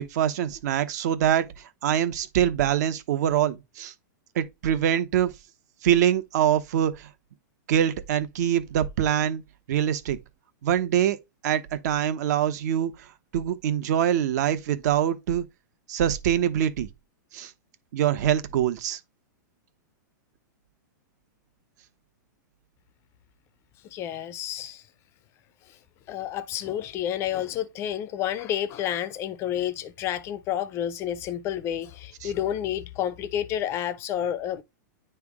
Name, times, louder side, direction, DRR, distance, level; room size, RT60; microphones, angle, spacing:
voice 1, 0.0-1.5 1.8-3.9 4.3-5.3 5.8-7.1 7.7-9.4 9.7-10.2 10.6-11.2 11.4-12.9 13.3-15.4 15.9-16.9 17.3-17.5 17.9-19.0 32.2-32.3, right 10 dB, 55° right, 1.0 m, -24 dB
voice 2, 23.9-24.8 26.1-34.6, left 10 dB, 25° left, 0.4 m, -30 dB
9.7 x 3.5 x 3.5 m
supercardioid pair, 155°, 11 cm